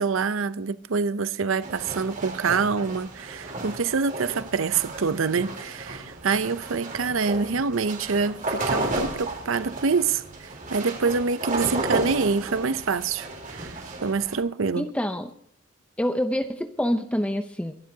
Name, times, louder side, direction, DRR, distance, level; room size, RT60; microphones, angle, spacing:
voice 1, 0.0-14.9, right 5 dB, 65° right, 0.6 m, -26 dB
sound 1, 1.6-14.4, right 2 dB, 40° right, 3.7 m, -33 dB
voice 2, 14.8-15.3 16.0-17.7, equal, 5° left, 0.6 m, -26 dB
24.0 x 12.0 x 2.8 m
head